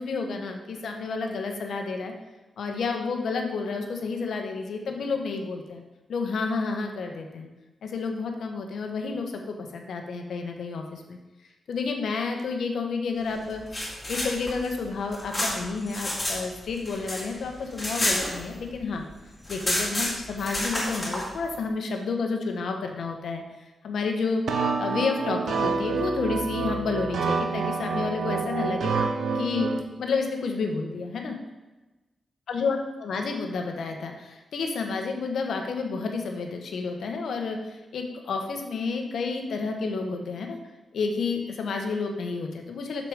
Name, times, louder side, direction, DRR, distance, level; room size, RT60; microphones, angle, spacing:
voice 1, 0.0-2.1 2.6-5.8 6.1-7.5 7.8-11.2 11.7-13.8 14.1-19.0 19.5-23.4 23.8-24.4 24.8-28.9 29.3-29.7 30.0-31.4 32.5-40.6 40.9-43.1, left 4 dB, 70° left, 4 dB, 1.1 m, -30 dB
sound 1, 13.5-16.4 16.7-18.8 19.1-19.2 19.4-21.2, left 1 dB, 10° left, 2.3 m, -29 dB
sound 2, 24.5-29.8, right 4 dB, 65° right, 0.7 m, -27 dB
6.6 x 6.4 x 5.0 m, 1.1 s
wide cardioid pair, 175°, 0 cm